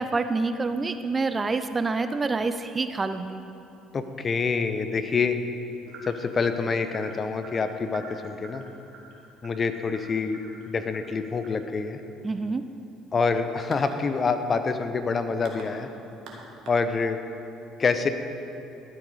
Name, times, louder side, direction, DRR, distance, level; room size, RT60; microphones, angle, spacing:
voice 1, 0.0-3.4 12.2-12.6, right 3 dB, 25° right, 10 dB, 0.5 m, -27 dB
voice 2, 3.9-5.4 6.0-8.6 9.4-10.4 10.7-12.0 13.1-15.9 16.7-17.2 17.8-18.1, left 4 dB, 35° left, 9 dB, 0.8 m, -26 dB
sound 1, 5.9-17.3, right 3 dB, 55° right, 1.8 m, -48 dB
12.0 x 8.3 x 5.0 m, 2.9 s
hypercardioid pair, 55°, 0 cm